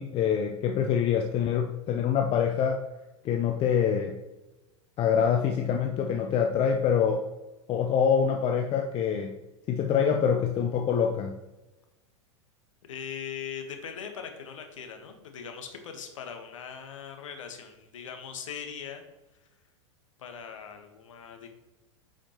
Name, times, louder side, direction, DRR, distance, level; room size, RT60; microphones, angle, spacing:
voice 1, 0.0-2.8 3.2-4.2 5.0-7.2 7.7-9.4 9.7-11.4, left 7 dB, 35° left, 3 dB, 0.6 m, -25 dB
voice 2, 12.8-19.1 20.2-21.5, left 7 dB, 75° left, 5 dB, 1.3 m, -40 dB
8.7 x 5.0 x 3.0 m, 1.0 s
hypercardioid pair, 100°, 16 cm